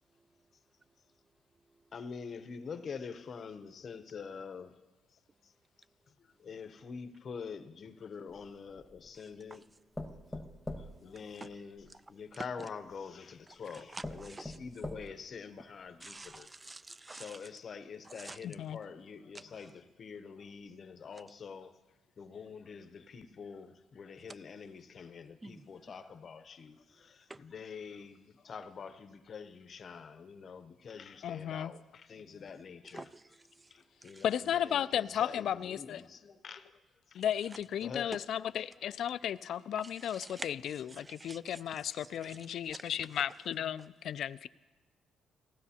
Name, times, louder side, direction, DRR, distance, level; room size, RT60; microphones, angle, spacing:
voice 1, 0.1-1.9 6.3-6.5 9.1-9.7 10.3-10.9 11.3-12.0 12.3-12.7 13.5-14.6 16.0-17.5 18.0-18.5 19.3-19.7 21.1-21.2 24.3-24.4 25.4-25.7 26.9-27.4 32.8-34.2 37.4-37.6 39.7-43.0, right 2 dB, 20° right, 0.3 m, -50 dB
voice 2, 1.9-4.8 5.4-5.5 6.2-9.6 10.3-10.4 10.8-16.5 17.1-21.8 22.2-33.0 33.7-36.8 37.1-37.2 37.8-38.1, left 5 dB, 50° left, 0.7 m, -46 dB
sound 1, 8.3-9.2 9.9-11.9 12.9-13.0 13.6-13.7 14.0-15.4 15.9-16.0 16.3-16.4, left 1 dB, 5° left, 1.1 m, -43 dB
voice 3, 18.4-18.8 31.2-31.7 34.2-36.0 37.1-44.5, left 10 dB, 70° left, 0.3 m, -34 dB
18.5 x 15.5 x 2.8 m
cardioid pair, 90°, 0 cm